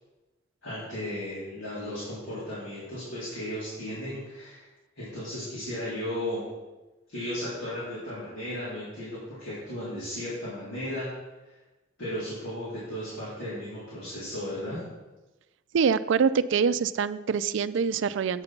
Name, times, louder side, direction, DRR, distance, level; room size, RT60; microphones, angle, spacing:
voice 1, 0.6-4.7 5.0-6.4 7.1-11.1 11.4-11.6 12.0-14.8, left 1 dB, 75° left, -10 dB, 3.5 m, -35 dB
voice 2, 15.7-18.4, right 6 dB, 65° right, 15 dB, 0.4 m, -25 dB
8.9 x 5.3 x 5.8 m, 1.1 s
head